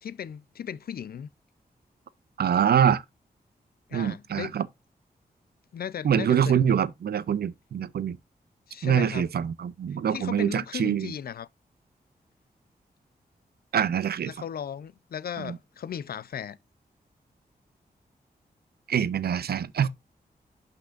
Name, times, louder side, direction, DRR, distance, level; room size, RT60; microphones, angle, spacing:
voice 1, 0.0-1.3 3.9-4.5 5.7-6.5 8.7-9.3 10.1-11.5 14.2-16.6, left 8 dB, 75° left, 0.5 m, -36 dB
voice 2, 2.4-3.0 3.9-4.7 6.0-8.2 8.8-11.1 13.7-14.3 15.4-15.6 18.9-19.9, right 8 dB, 85° right, 0.7 m, -25 dB
12.0 x 5.4 x 2.5 m
wide cardioid pair, 175°, 16 cm